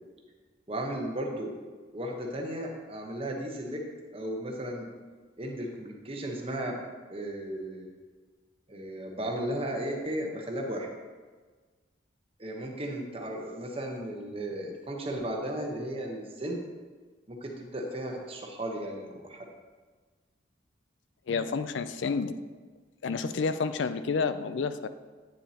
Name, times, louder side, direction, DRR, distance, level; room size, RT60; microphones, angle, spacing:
voice 1, 0.7-1.5 1.9-3.8 4.1-4.9 5.4-6.8 7.1-7.9 8.7-10.9 12.4-16.6 17.3-19.4, right 1 dB, 30° right, 1 dB, 1.0 m, -35 dB
voice 2, 21.3-22.3 23.0-24.9, left 5 dB, 75° left, 12 dB, 0.4 m, -29 dB
9.0 x 7.2 x 2.9 m, 1.4 s
head